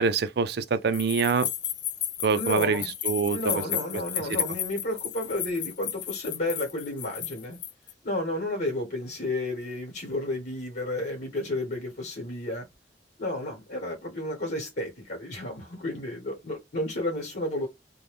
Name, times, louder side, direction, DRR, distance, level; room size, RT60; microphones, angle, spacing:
voice 1, 0.0-1.5 2.2-3.6, right 5 dB, 65° right, 0.4 m, -25 dB
sound 1, 0.9-7.9, left 10 dB, 85° left, 0.4 m, -33 dB
voice 2, 2.3-2.9 3.3-7.6 8.0-12.6 13.2-17.7, left 1 dB, 55° left, 1.2 m, -32 dB
2.6 x 2.2 x 3.2 m
head